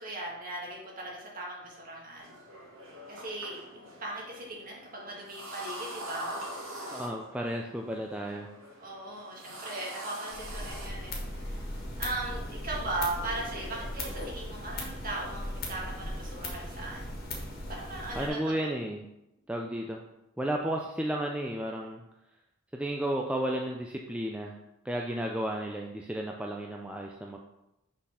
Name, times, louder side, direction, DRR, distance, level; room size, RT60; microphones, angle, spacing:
voice 1, 0.0-2.3 3.1-6.4 8.8-11.6 12.0-17.1 17.7-18.7, right 2 dB, 40° right, -3 dB, 1.8 m, -38 dB
sound 1, 2.2-12.4, right 1 dB, 80° right, 2.3 m, -44 dB
voice 2, 6.9-8.5 18.1-19.1 19.5-20.0 20.4-22.0 22.7-24.6 24.8-27.4, right 1 dB, 5° right, 0 dB, 0.4 m, -33 dB
sound 2, 10.3-18.3, left 1 dB, 45° left, 1.6 m, -38 dB
6.2 x 4.1 x 5.6 m, 0.92 s
head